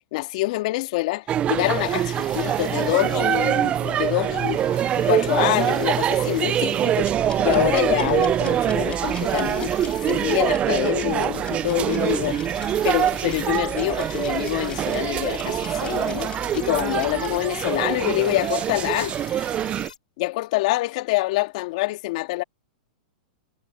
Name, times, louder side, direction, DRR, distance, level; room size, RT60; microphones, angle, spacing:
voice 1, 0.1-4.6 5.0-7.1 7.4-12.4 12.8-19.1 20.2-22.4, left 20 dB, 60° left, 1.8 m, -25 dB
sound 1, 1.3-19.9, right 11 dB, 25° right, 0.4 m, -24 dB
sound 2, 1.6-20.0, left 7 dB, 90° left, 4.7 m, -42 dB
sound 3, 7.0-17.4, left 8 dB, 25° left, 5.0 m, -40 dB
hypercardioid pair, 115°, 4 cm